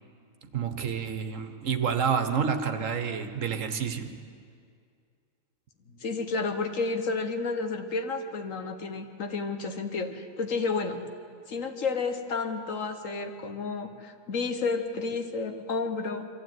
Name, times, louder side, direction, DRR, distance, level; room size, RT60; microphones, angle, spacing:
voice 1, 0.5-4.1, right 7 dB, 80° right, 8 dB, 1.6 m, -29 dB
voice 2, 5.9-11.0 11.5-16.3, left 4 dB, 80° left, 7 dB, 1.7 m, -31 dB
23.5 x 15.0 x 9.4 m, 2.2 s
omnidirectional pair, 1.3 m